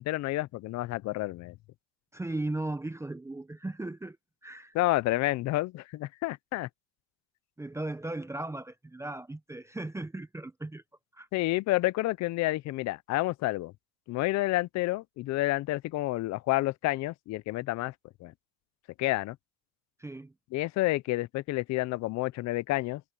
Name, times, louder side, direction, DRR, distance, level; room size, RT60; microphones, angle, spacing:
voice 1, 0.0-1.5 4.7-6.7 11.3-13.7 14.1-17.9 18.2-18.3 19.0-19.4 20.5-23.0, left 18 dB, 50° left, 0.5 m, -29 dB
voice 2, 2.1-4.2 4.4-4.7 7.6-10.8 11.1-11.3 20.0-20.3, right 2 dB, 10° right, 0.7 m, -37 dB
cardioid pair, 145°, 35 cm